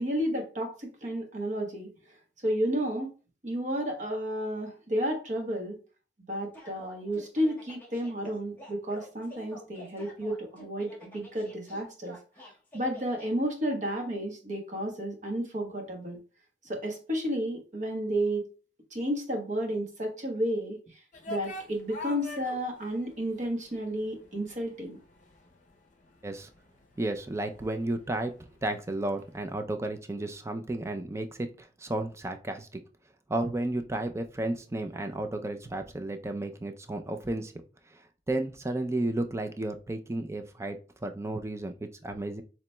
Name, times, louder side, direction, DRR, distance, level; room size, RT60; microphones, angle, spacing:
voice 1, 0.0-3.1 3.4-5.8 6.3-16.2 16.6-18.5 18.9-25.0, equal, 45° right, 2 dB, 1.2 m, -32 dB
sound 1, 6.5-13.3, left 1 dB, 10° left, 1.5 m, -49 dB
sound 2, 21.1-29.4, left 2 dB, 45° left, 0.6 m, -46 dB
voice 2, 27.0-28.3 28.6-32.8 33.3-37.5 37.9-42.4, right 2 dB, 15° right, 6 dB, 0.4 m, -33 dB
7.1 x 3.0 x 2.2 m, 0.35 s
head